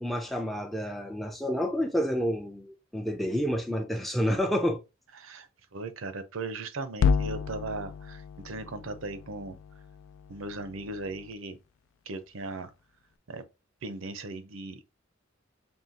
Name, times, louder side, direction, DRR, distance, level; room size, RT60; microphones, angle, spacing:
voice 1, 0.0-4.8, equal, ahead, 0.4 m, -29 dB
voice 2, 5.2-9.6 10.3-11.6 12.1-12.7 13.3-13.4 13.8-14.8, right 3 dB, 90° right, 0.7 m, -38 dB
sound 1, 7.0-11.3, left 6 dB, 80° left, 0.3 m, -31 dB
5.5 x 2.7 x 2.7 m
head